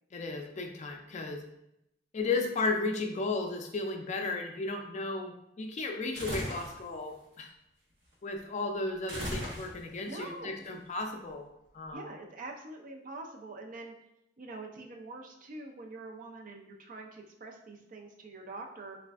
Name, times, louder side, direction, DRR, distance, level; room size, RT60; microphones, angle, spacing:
voice 1, 0.1-1.4 2.1-7.5 8.2-11.5 11.7-12.0, left 3 dB, 40° left, 3 dB, 0.4 m, -34 dB
sound 1, 6.1-6.8 9.1-10.0, equal, 75° right, 0.9 m, -37 dB
voice 2, 10.0-10.6 11.9-13.9 14.4-19.0, right 2 dB, 50° right, 3 dB, 0.5 m, -45 dB
3.1 x 2.4 x 3.4 m, 0.81 s
head